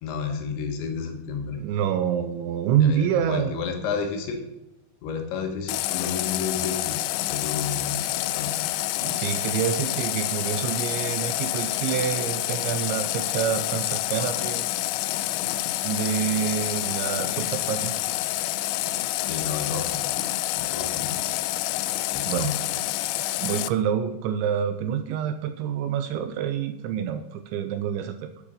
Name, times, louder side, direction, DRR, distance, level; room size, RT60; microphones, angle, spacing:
voice 1, 0.0-1.6 2.8-4.4 5.0-7.0 7.3-8.0 8.4-8.5 19.2-20.1 20.6-21.2 22.1-22.5, left 6 dB, 70° left, 4 dB, 3.5 m, -31 dB
voice 2, 1.6-3.5 9.0-14.7 15.8-17.9 22.3-22.5 23.4-28.3, right 9 dB, 85° right, 8 dB, 2.8 m, -27 dB
Water tap faucet, 5.7-23.7, left 16 dB, 90° left, 2.5 m, -28 dB
12.0 x 8.7 x 5.5 m, 0.93 s
omnidirectional pair, 5.7 m